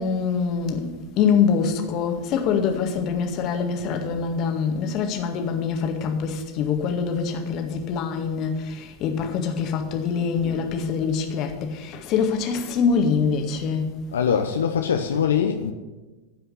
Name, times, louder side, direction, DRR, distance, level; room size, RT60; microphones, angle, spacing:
voice 1, 0.0-13.9, left 6 dB, 35° left, 1.8 m, -24 dB
voice 2, 14.1-15.7, left 7 dB, 65° left, 0.8 m, -22 dB
15.5 x 5.7 x 8.3 m
figure-of-eight pair, 90°, 0 cm